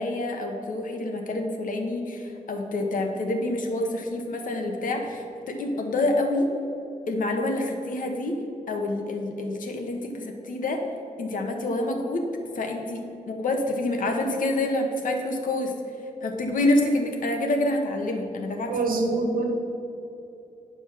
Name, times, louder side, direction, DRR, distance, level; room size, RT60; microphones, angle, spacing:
voice 1, 0.0-6.5 7.1-8.4 8.7-10.8 11.2-12.3 12.5-15.7 16.2-18.8, left 2 dB, 70° left, 3 dB, 1.2 m, -27 dB
voice 2, 18.7-19.5, right 3 dB, 85° right, 3 dB, 1.3 m, -24 dB
9.5 x 5.3 x 5.9 m, 2.9 s
wide cardioid pair, 170°, 14 cm